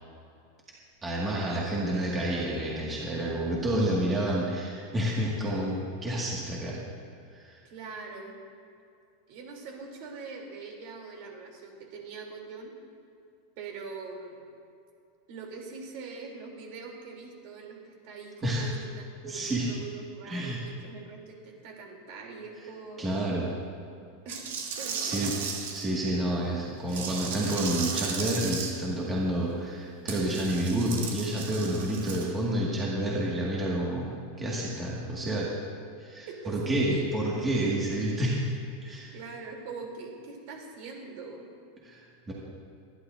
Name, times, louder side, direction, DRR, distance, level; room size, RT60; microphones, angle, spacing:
voice 1, 1.0-6.8 7.3-7.6 18.4-18.6 19.3-19.7 20.3-20.6 23.0-23.5 25.0-25.3 25.7-34.1 34.4-35.5 36.0-38.4 38.8-39.1 41.8-42.0 42.3-42.4, right 1 dB, 15° right, -5 dB, 1.8 m, -29 dB
voice 2, 7.6-8.4 9.3-12.7 13.6-14.4 15.3-17.8 18.0-18.9 19.2-23.1 24.2-25.4 36.3-37.2 39.1-41.5, right 4 dB, 55° right, 0 dB, 3.1 m, -42 dB
sound 1, 24.3-25.8 26.9-28.7 30.1-32.3, right 6 dB, 85° right, 2.7 m, -35 dB
24.0 x 11.5 x 2.6 m, 2.5 s
supercardioid pair, 155°, 0 cm